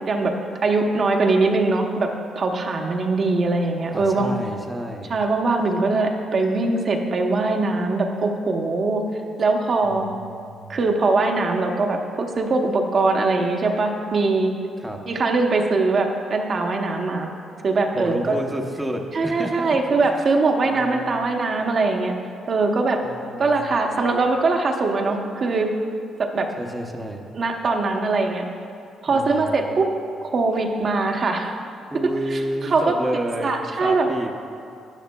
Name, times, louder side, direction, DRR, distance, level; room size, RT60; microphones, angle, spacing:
voice 1, 0.6-2.1 2.3-4.3 5.1-9.0 9.4-10.1 10.7-14.5 15.1-17.3 17.6-18.4 19.1-22.1 22.5-23.0 23.4-25.7 26.2-26.5 27.3-28.4 29.0-29.9 30.2-31.5 32.3-33.0 33.4-34.1, right 3 dB, 50° right, 2 dB, 0.8 m, -21 dB
voice 2, 3.9-5.2 9.8-10.8 14.8-15.0 17.9-20.2 20.7-21.3 23.0-23.9 26.6-27.3 29.1-29.8 31.9-34.5, right 1 dB, 10° right, 1 dB, 0.7 m, -31 dB
12.5 x 9.9 x 2.2 m, 2.5 s
cardioid pair, 90°, 0 cm